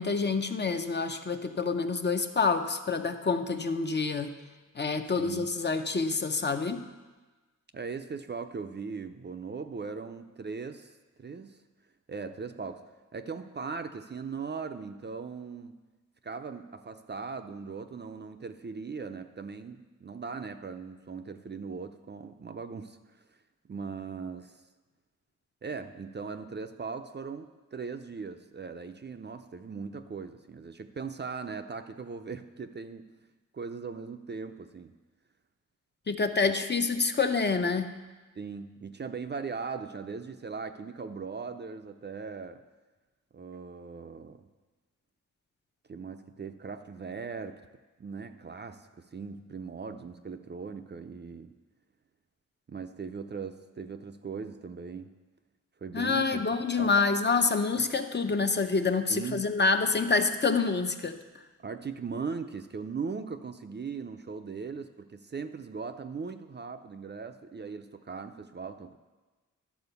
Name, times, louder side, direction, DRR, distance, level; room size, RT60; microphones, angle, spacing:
voice 1, 0.0-4.3 4.8-6.8 36.1-37.9 55.9-61.2, left 4 dB, 35° left, 7 dB, 0.5 m, -27 dB
voice 2, 5.2-5.5 7.7-11.6 12.1-15.8 16.2-23.0 23.7-24.6 25.6-33.1 33.5-35.0 36.4-36.5 38.4-42.6 43.3-44.5 45.9-47.6 48.0-51.6 52.7-55.1 55.8-56.4 56.8-57.0 57.8-57.9 59.1-59.4 61.6-69.0, right 5 dB, 35° right, 8 dB, 0.4 m, -39 dB
11.5 x 4.4 x 6.8 m, 1.2 s
wide cardioid pair, 105°, 32 cm